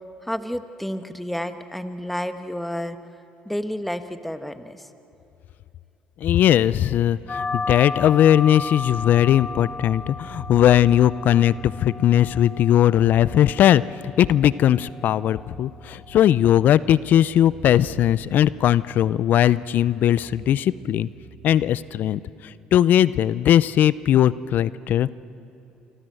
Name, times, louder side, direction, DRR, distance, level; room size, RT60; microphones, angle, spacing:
voice 1, 0.2-3.0 3.4-4.9, equal, 5° left, 9 dB, 1.5 m, -30 dB
voice 2, 6.2-21.1 21.4-25.1, left 11 dB, 60° left, 19 dB, 0.6 m, -19 dB
sound 1, 7.2-21.5, right 5 dB, 90° right, 4.5 m, -46 dB
sound 2, 7.3-16.3, left 4 dB, 30° left, 0.8 m, -35 dB
27.5 x 25.5 x 7.8 m, 2.8 s
supercardioid pair, 70°, 3 cm